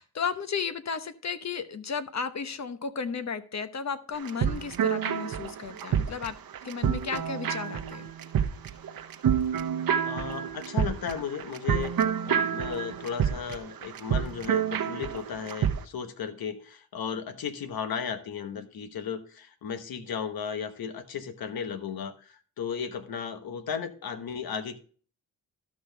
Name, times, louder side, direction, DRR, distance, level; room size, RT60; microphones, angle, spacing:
voice 1, 0.0-6.3 6.6-8.1, left 6 dB, 45° left, 11 dB, 1.0 m, -34 dB
simple relaxing guitar loop, 4.1-15.8, right 8 dB, 70° right, 1.0 m, -28 dB
voice 2, 10.1-11.9 12.2-24.8, left 7 dB, 75° left, 9 dB, 1.2 m, -35 dB
12.5 x 6.2 x 3.4 m, 0.41 s
cardioid pair, 65°, 36 cm